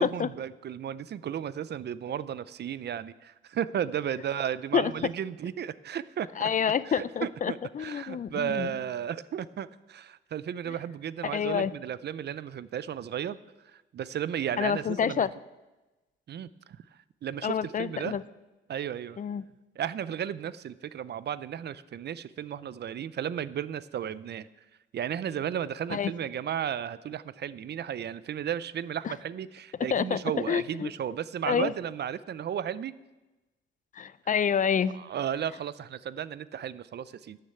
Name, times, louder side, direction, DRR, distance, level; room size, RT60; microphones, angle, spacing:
voice 1, 0.0-6.5 6.8-13.4 13.6-15.3 16.3-16.5 17.2-18.2 18.7-19.2 19.8-24.5 24.9-32.9 34.9-37.4, right 9 dB, 55° right, 17 dB, 0.5 m, -34 dB
voice 2, 6.4-8.7 11.2-11.7 14.6-15.3 17.4-18.2 19.2-19.4 25.9-26.1 29.0-29.1 29.9-30.2 30.5-30.9 31.5-31.7 33.9-34.9, left 7 dB, 40° left, 18 dB, 0.4 m, -28 dB
12.0 x 6.6 x 8.2 m, 1.1 s
cardioid pair, 105°, 21 cm